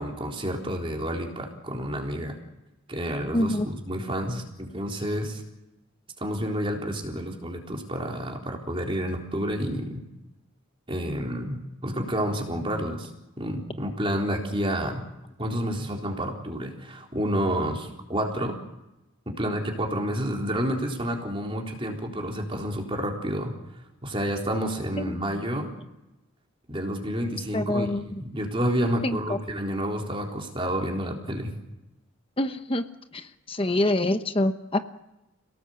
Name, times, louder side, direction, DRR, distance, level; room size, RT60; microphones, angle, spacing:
voice 1, 0.0-2.4 2.9-5.4 6.2-10.0 10.9-13.1 13.4-15.0 15.4-18.6 19.3-23.5 24.0-25.7 26.7-27.9 28.2-31.5, equal, 25° right, 1 dB, 3.9 m, -29 dB
voice 2, 3.3-3.7 25.0-25.1 27.5-28.2 29.0-29.4 32.4-32.8 33.1-34.8, left 1 dB, 25° left, 8 dB, 1.0 m, -26 dB
28.5 x 18.0 x 8.0 m, 0.99 s
head